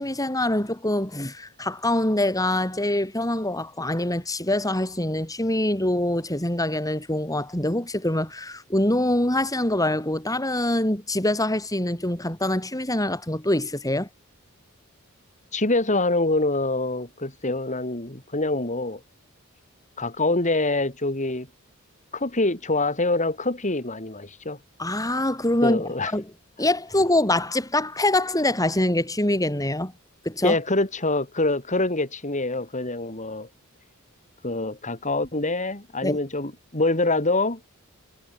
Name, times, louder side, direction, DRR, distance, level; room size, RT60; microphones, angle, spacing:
voice 1, 0.0-14.1 24.8-25.8 26.1-26.2 26.6-29.9 30.3-30.6 36.0-36.2, left 1 dB, 15° left, 7.2 m, -24 dB
voice 2, 15.5-19.0 20.0-21.5 22.1-24.6 25.6-26.1 30.4-33.5 34.4-37.6, left 2 dB, 35° left, 4.8 m, -25 dB
head